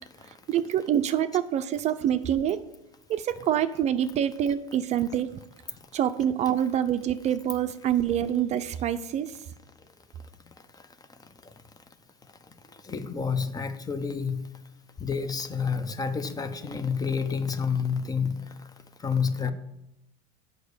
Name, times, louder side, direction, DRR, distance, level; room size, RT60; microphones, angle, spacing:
voice 1, 0.5-2.6 3.1-5.4 5.9-9.3, right 10 dB, 40° right, 11 dB, 0.6 m, -26 dB
voice 2, 12.9-14.4 15.0-18.4 19.0-19.5, left 6 dB, 20° left, 11 dB, 0.8 m, -29 dB
7.9 x 5.4 x 6.9 m, 0.85 s
hypercardioid pair, 85°, 17 cm